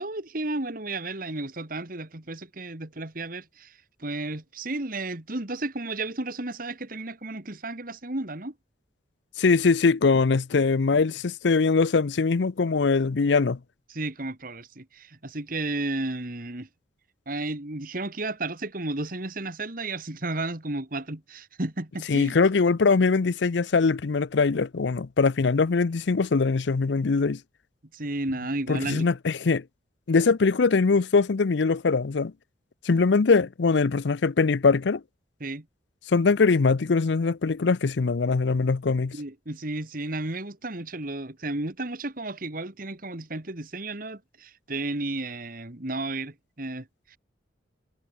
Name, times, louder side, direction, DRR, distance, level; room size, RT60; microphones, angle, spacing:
voice 1, 0.0-8.5 13.9-16.7 17.3-22.4 27.9-29.0 35.4-35.7 39.1-47.2, right 2 dB, 45° right, 2.1 m, -33 dB
voice 2, 9.4-13.6 22.1-27.4 28.7-29.6 30.1-32.3 32.8-35.0 36.1-39.1, left 4 dB, 70° left, 0.6 m, -22 dB
head